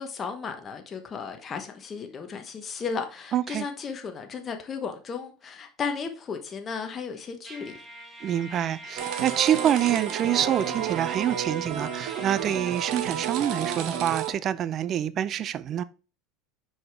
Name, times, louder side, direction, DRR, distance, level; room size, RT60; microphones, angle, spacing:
voice 1, 0.0-7.7, left 5 dB, 30° left, 1.1 m, -34 dB
voice 2, 3.3-3.6 8.2-15.8, right 10 dB, 45° right, 0.4 m, -26 dB
Trumpet, 7.5-12.8, equal, 15° right, 1.6 m, -43 dB
sound 1, 9.0-14.3, right 9 dB, 65° right, 1.2 m, -31 dB
6.0 x 5.0 x 3.5 m
supercardioid pair, 100°, 0 cm